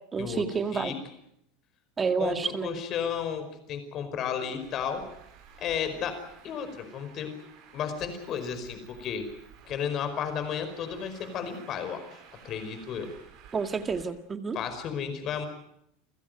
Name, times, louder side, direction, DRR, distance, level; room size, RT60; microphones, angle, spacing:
voice 1, 0.1-0.9 2.0-2.7 13.5-14.6, right 5 dB, 20° right, 8 dB, 2.0 m, -29 dB
voice 2, 2.2-5.1 5.6-7.3 7.7-9.3 9.6-12.2 12.4-13.1 14.5-15.5, left 7 dB, 35° left, 9 dB, 5.0 m, -33 dB
Traffic noise roadway noise, 4.5-14.0, right 8 dB, 50° right, 7.0 m, -53 dB
28.5 x 16.0 x 9.2 m, 0.78 s
supercardioid pair, 145°, 0 cm